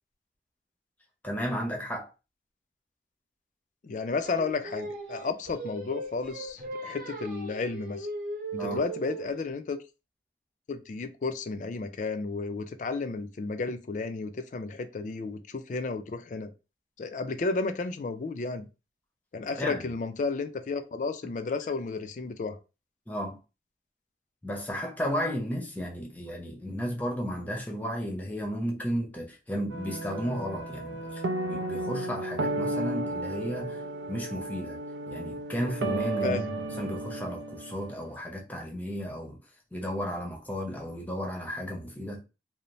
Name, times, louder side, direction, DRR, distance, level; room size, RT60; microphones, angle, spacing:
voice 1, 1.2-2.1 8.6-8.8 19.6-19.9 23.1-23.4 24.4-31.2 31.5-33.8 34.1-34.8 35.1-36.5 36.8-39.4 39.7-42.2, equal, 10° left, 0.6 m, -33 dB
voice 2, 3.8-8.1 8.5-9.8 10.7-16.5 17.0-18.7 19.3-22.6 36.2-36.5, left 4 dB, 45° left, 0.3 m, -32 dB
Singing, 4.2-9.4, right 2 dB, 50° right, 0.8 m, -38 dB
sound 1, 29.7-38.1, right 2 dB, 90° right, 0.4 m, -33 dB
2.6 x 2.0 x 3.0 m
head